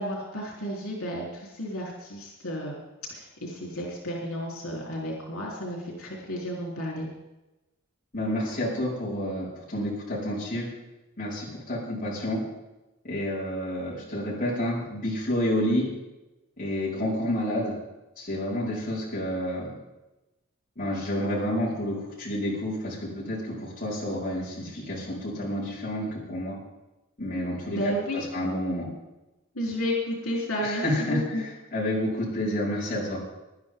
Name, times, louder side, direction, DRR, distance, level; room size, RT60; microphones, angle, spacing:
voice 1, 0.0-2.8 3.1-7.1 27.7-28.2 29.5-31.4, equal, 85° left, -3 dB, 4.0 m, -32 dB
voice 2, 8.1-10.7 11.2-12.4 13.0-15.9 16.6-17.7 18.2-19.7 20.8-26.6 27.2-27.9 28.3-28.9 30.6-33.2, left 1 dB, 40° left, -6 dB, 5.3 m, -29 dB
19.5 x 12.0 x 3.9 m, 1.0 s
head